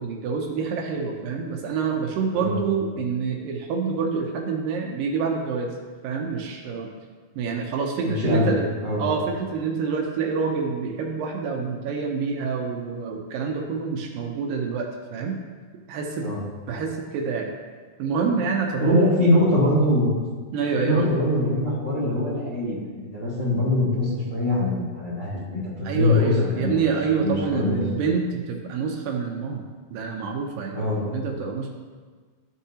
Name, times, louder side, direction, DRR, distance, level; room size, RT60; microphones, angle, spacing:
voice 1, 0.0-5.7 6.0-6.9 7.4-8.6 9.0-15.4 15.9-16.3 16.7-17.5 18.0-19.0 20.5-21.1 25.8-29.6 29.9-31.8, right 5 dB, 75° right, 2 dB, 2.3 m, -27 dB
voice 2, 8.0-8.5 8.8-9.0 16.2-16.4 18.8-20.1 20.7-26.9 27.2-27.8 30.7-31.0, left 1 dB, 25° left, -10 dB, 1.4 m, -23 dB
13.0 x 4.5 x 2.8 m, 1.5 s
omnidirectional pair, 4.3 m